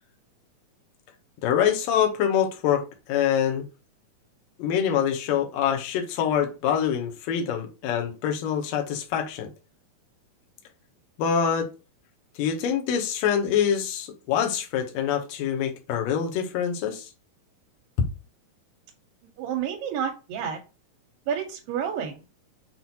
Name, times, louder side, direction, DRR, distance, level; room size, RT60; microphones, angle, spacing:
voice 1, 1.4-2.8 3.1-3.6 4.6-9.5 11.2-11.7 12.4-17.1, left 8 dB, 70° left, 1.7 m, -25 dB
voice 2, 19.4-20.6 21.3-22.2, right 8 dB, 85° right, 2.4 m, -29 dB
5.9 x 2.4 x 2.8 m
omnidirectional pair, 4.0 m